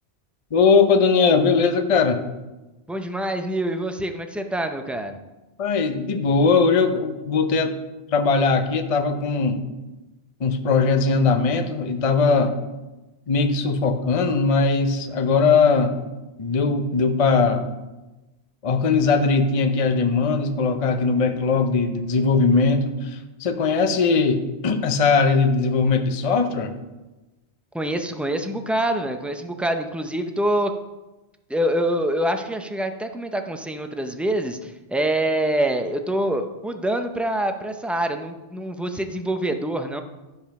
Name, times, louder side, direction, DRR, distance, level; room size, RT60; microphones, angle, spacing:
voice 1, 0.5-2.2 5.6-7.7 8.1-9.6 10.4-12.6 13.3-16.0 16.4-17.7 18.6-26.8, left 4 dB, 40° left, 7 dB, 0.6 m, -20 dB
voice 2, 2.9-5.2 27.7-30.7 31.5-40.0, right 1 dB, ahead, 6 dB, 0.5 m, -25 dB
12.5 x 5.2 x 5.8 m, 1.1 s
omnidirectional pair, 1.1 m